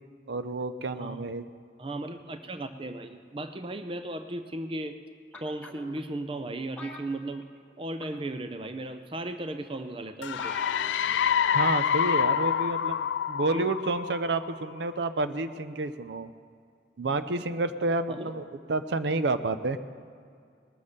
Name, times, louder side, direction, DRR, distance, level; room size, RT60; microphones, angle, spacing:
voice 1, 0.3-1.5 11.5-16.3 17.0-19.8, right 2 dB, 70° right, 11 dB, 0.6 m, -30 dB
voice 2, 1.0-1.3 1.8-5.0 5.4-7.5 7.8-10.5 13.5-13.6 18.1-18.4, right 1 dB, 30° right, 9 dB, 0.5 m, -36 dB
sound 1, 5.3-6.0 6.8-7.7 8.0-8.3 9.2-9.3 9.8-9.9 10.1-10.2 10.4-11.0 11.6-11.9 12.2-12.3, left 2 dB, 5° left, 1.3 m, -45 dB
sound 2, 10.2-14.8, left 8 dB, 85° left, 0.4 m, -27 dB
19.5 x 7.3 x 6.6 m, 2.3 s
head